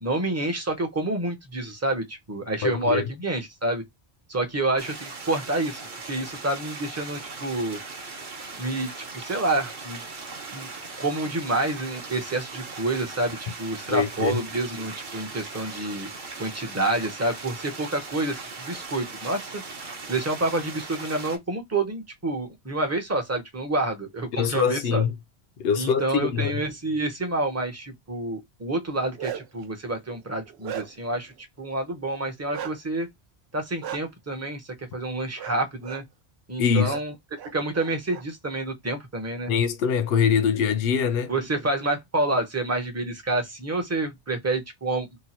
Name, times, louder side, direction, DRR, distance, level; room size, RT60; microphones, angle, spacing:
voice 1, 0.0-3.8 4.3-7.8 8.6-10.0 10.5-10.7 11.0-16.1 16.4-19.6 20.1-25.0 25.8-31.3 31.6-33.1 33.5-36.0 36.5-37.1 37.5-39.5 41.3-45.1, right 2 dB, 15° right, 0.6 m, -28 dB
voice 2, 2.6-3.1 13.9-14.4 24.3-25.1 25.6-26.6 36.6-37.0 39.5-41.3, left 7 dB, 70° left, 0.8 m, -23 dB
sound 1, 4.8-21.4, right 4 dB, 50° right, 0.9 m, -39 dB
Bark, 28.9-29.6 30.1-31.2 32.5-32.7 33.8-34.0 35.4-35.6 35.8-36.0 36.8-37.0 37.4-38.2, right 10 dB, 75° right, 0.8 m, -36 dB
2.9 x 2.2 x 4.1 m
omnidirectional pair, 1.1 m